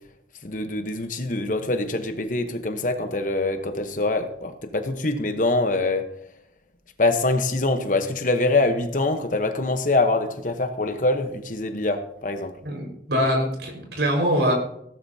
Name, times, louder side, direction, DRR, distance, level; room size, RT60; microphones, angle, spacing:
voice 1, 0.4-6.0 7.0-12.5, left 2 dB, 45° left, 7 dB, 1.1 m, -24 dB
voice 2, 12.6-14.5, equal, 75° right, 1 dB, 5.0 m, -23 dB
17.0 x 12.5 x 2.8 m, 0.74 s
head